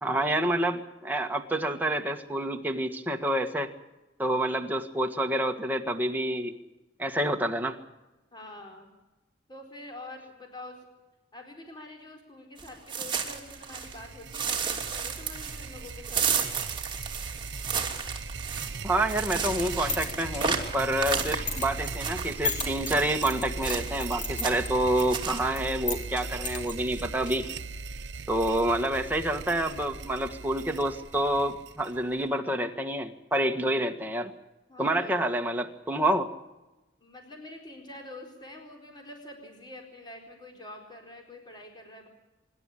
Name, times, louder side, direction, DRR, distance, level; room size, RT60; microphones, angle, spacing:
voice 1, 0.0-3.7 4.2-6.5 7.0-7.8 18.8-27.5 28.3-34.3 34.8-36.3, right 1 dB, 10° right, 3 dB, 1.6 m, -28 dB
voice 2, 8.3-8.9 9.5-10.9 11.3-16.3 34.7-35.3 37.0-42.1, left 1 dB, 25° left, 2 dB, 4.3 m, -46 dB
sound 1, 12.6-14.0 14.3-23.2 23.6-24.1 24.3-24.8 25.1-25.4, right 6 dB, 25° right, 2.8 m, -32 dB
sound 2, 13.2-32.3, right 4 dB, 65° right, 0.8 m, -39 dB
sound 3, 19.6-27.6, left 4 dB, 40° left, 3.6 m, -38 dB
25.5 x 12.0 x 9.9 m, 1.1 s
head